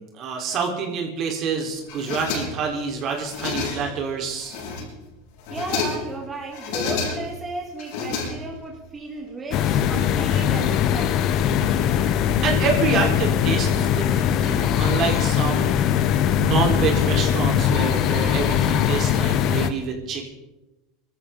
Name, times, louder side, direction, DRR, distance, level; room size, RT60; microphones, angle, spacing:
voice 1, 0.0-4.6 12.4-15.8 16.4-20.3, right 5 dB, 50° right, 1 dB, 4.1 m, -27 dB
sound 1, 1.9-2.8 3.1-4.0 4.4-5.0 5.4-6.2 6.5-7.4 7.8-8.8, left 5 dB, 70° left, 7.3 m, -30 dB
voice 2, 5.5-11.3, right 3 dB, 20° right, -1 dB, 3.0 m, -34 dB
sound 2, 9.5-19.7, left 9 dB, 50° left, 1.2 m, -21 dB
24.0 x 13.5 x 3.9 m, 1.0 s
supercardioid pair, 105°, 0 cm